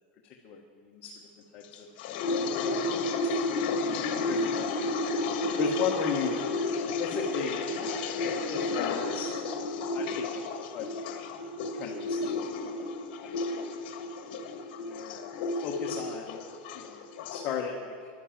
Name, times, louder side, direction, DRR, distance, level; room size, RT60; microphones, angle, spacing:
voice 1, 1.5-1.9 3.5-4.4 5.6-6.5 7.0-9.3 9.7-10.4 10.7-10.9 11.7-12.7 13.2-13.3 13.9-14.1 14.8-16.4 16.7-17.0 17.3-18.1, left 7 dB, 35° left, 1 dB, 1.3 m, -36 dB
sound 1, 1.7-17.4, left 3 dB, 60° left, 1.6 m, -32 dB
11.5 x 11.0 x 7.4 m, 2.2 s
supercardioid pair, 150°, 5 cm